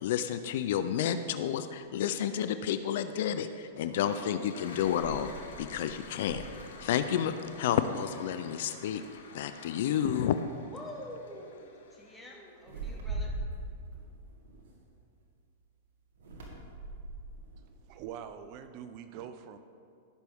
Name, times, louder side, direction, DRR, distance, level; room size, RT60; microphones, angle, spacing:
voice 1, 0.0-5.3 5.6-6.4 6.8-9.0 9.3-10.4, left 9 dB, 65° left, 11 dB, 0.4 m, -30 dB
sound 1, 1.9-2.0 4.1-7.7 8.1-8.4 8.8-9.5 10.4-10.6 10.9-11.2 12.6-15.2 16.1-18.6, right 2 dB, 70° right, 2.1 m, -42 dB
Toilet flush, 3.7-12.6, left 4 dB, 85° left, 1.3 m, -51 dB
voice 2, 10.7-13.3, left 1 dB, 5° left, -3 dB, 1.9 m, -46 dB
voice 3, 17.9-19.6, right 9 dB, 45° right, 10 dB, 0.5 m, -44 dB
15.5 x 6.0 x 3.6 m, 2.4 s
hypercardioid pair, 125°, 0 cm